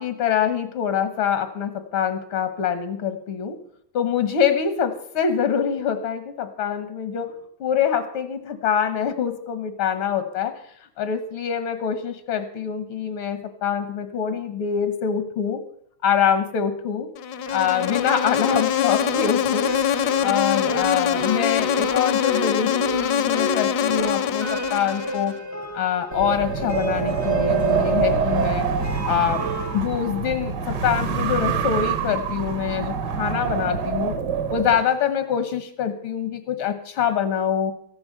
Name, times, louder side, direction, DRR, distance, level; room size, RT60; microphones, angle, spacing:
voice 1, 0.0-3.6 3.9-10.5 11.0-15.6 16.0-17.1 17.5-19.7 20.0-25.3 25.7-28.7 29.1-29.4 29.7-34.1 34.5-37.7, left 8 dB, 85° left, 10 dB, 2.1 m, -24 dB
Insect, 17.2-25.4, left 8 dB, 65° left, 1.1 m, -24 dB
sound 1, 17.5-29.8, equal, 20° left, 0.5 m, -33 dB
Wind, 26.1-34.8, right 6 dB, 55° right, 1.7 m, -25 dB
14.5 x 10.5 x 6.6 m, 0.67 s
omnidirectional pair, 2.2 m